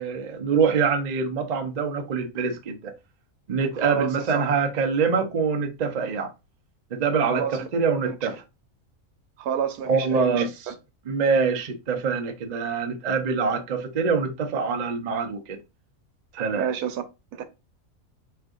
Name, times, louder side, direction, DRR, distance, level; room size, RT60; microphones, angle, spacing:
voice 1, 0.0-2.9 3.5-6.3 6.9-8.4 9.9-10.5 11.1-15.6 16.3-16.7, right 5 dB, 70° right, 0.4 m, -25 dB
voice 2, 3.8-4.5 7.3-7.6 8.0-8.3 9.4-10.7 16.5-17.0 17.3-17.4, right 8 dB, 85° right, 1.1 m, -29 dB
3.6 x 3.3 x 2.3 m
omnidirectional pair, 1.6 m